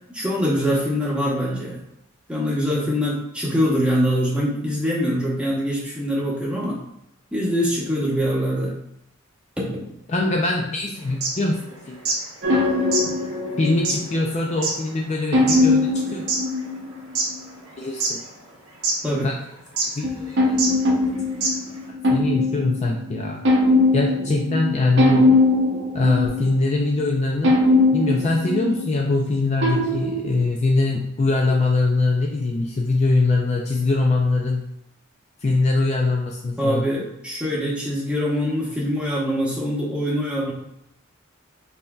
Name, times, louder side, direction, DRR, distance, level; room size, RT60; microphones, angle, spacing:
voice 1, 0.1-1.8 2.3-6.8 7.3-8.7 9.6-9.9 19.0-19.3 36.6-40.5, equal, 5° right, -4 dB, 0.8 m, -23 dB
voice 2, 10.1-12.0 13.6-16.3 17.8-18.2 19.2-19.3 20.0-20.8 22.1-23.4 23.9-25.2 25.9-27.6 27.9-34.7 35.4-36.9, left 2 dB, 30° left, 0 dB, 0.4 m, -22 dB
sound 1, 11.1-12.3 12.5-12.6 12.9-16.5 16.9-17.7 18.0-18.5 18.8-19.0 19.8-20.0 20.6-20.7 21.0-21.1 21.4-21.8, right 3 dB, 85° right, 1.0 m, -25 dB
sound 2, 12.4-14.2 15.3-17.3 20.0-27.1 27.4-30.4, left 2 dB, 55° right, 0.7 m, -21 dB
5.5 x 2.6 x 2.3 m, 0.81 s
head